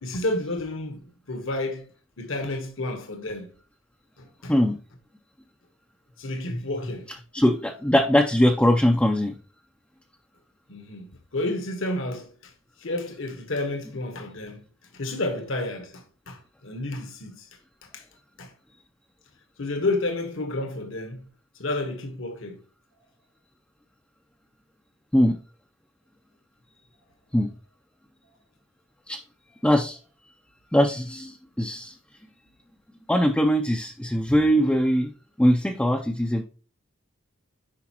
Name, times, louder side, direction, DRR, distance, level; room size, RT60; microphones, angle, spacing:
voice 1, 0.0-1.9 2.2-3.5 4.2-4.6 6.2-7.1 10.7-12.5 12.8-14.7 14.9-17.5 17.8-18.0 18.4-18.5 19.6-21.3 21.6-22.6, left 2 dB, 65° left, 1.2 m, -31 dB
voice 2, 7.3-9.3 25.1-25.4 27.3-27.5 29.1-29.2 29.6-30.0 30.7-31.9 33.1-35.1 35.4-36.4, equal, 5° left, 0.5 m, -21 dB
10.0 x 5.0 x 2.9 m
head